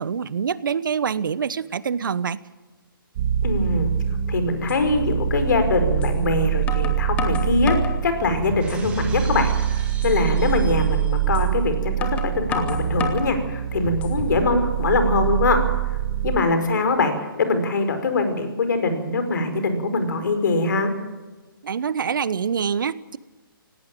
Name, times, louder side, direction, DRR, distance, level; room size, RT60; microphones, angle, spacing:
voice 1, 0.0-2.4 21.6-23.2, right 7 dB, 60° right, 18 dB, 1.0 m, -25 dB
sound 1, 3.2-16.4, right 9 dB, 35° right, 1.9 m, -24 dB
voice 2, 3.4-3.9 4.3-9.5 10.0-15.6 16.2-20.9, left 3 dB, 55° left, 8 dB, 5.0 m, -23 dB
sound 2, 4.1-4.2 4.7-4.8 6.0-6.2 6.7-8.0 8.5-9.0 9.4-9.5 10.0-10.2 11.3-11.5 12.0-13.3 13.8-14.4, left 5 dB, 10° left, 1.8 m, -31 dB
Shatter, 8.6-11.4, right 5 dB, 10° right, 2.8 m, -43 dB
18.5 x 18.0 x 9.1 m, 1.2 s
hypercardioid pair, 150°, 12 cm